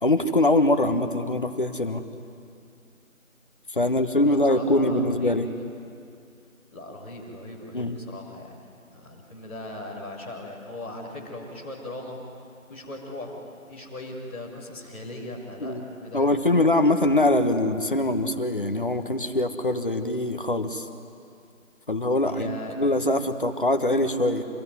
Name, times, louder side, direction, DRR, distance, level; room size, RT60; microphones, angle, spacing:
voice 1, 0.0-2.0 3.7-5.5 7.7-8.0 15.6-15.8 16.1-20.9 21.9-24.4, left 1 dB, 40° left, 7 dB, 1.4 m, -23 dB
voice 2, 4.1-5.3 6.7-8.6 8.9-12.2 12.7-16.7 22.2-22.8, left 1 dB, 10° left, -10 dB, 2.5 m, -39 dB
27.0 x 21.5 x 9.7 m, 2.5 s
figure-of-eight pair, 175°, 42 cm